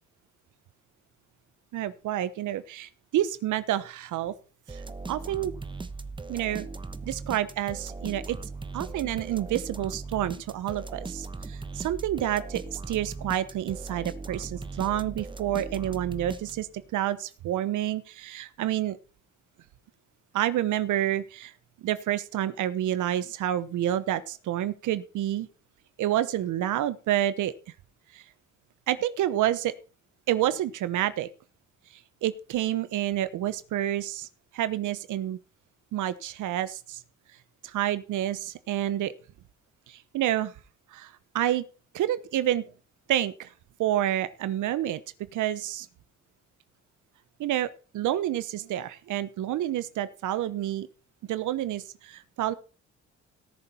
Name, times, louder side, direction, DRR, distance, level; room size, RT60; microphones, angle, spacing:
voice 1, 1.7-4.3 4.7-4.8 5.1-5.5 6.3-6.7 7.0-8.4 8.7-19.0 20.3-21.5 21.8-25.5 26.0-27.5 28.1-28.2 28.9-29.7 30.3-31.3 32.2-34.3 34.5-35.4 35.9-37.0 37.6-39.1 39.9-40.5 40.9-41.6 41.9-42.6 43.1-43.5 43.8-45.0 45.3-45.9 47.4-47.7 47.9-50.9 51.3-52.5, right 12 dB, 80° right, 14 dB, 1.0 m, -29 dB
sound 1, 4.7-16.9, right 3 dB, 15° right, 1.0 m, -39 dB
17.5 x 6.9 x 4.4 m, 0.36 s
cardioid pair, 90°, 30 cm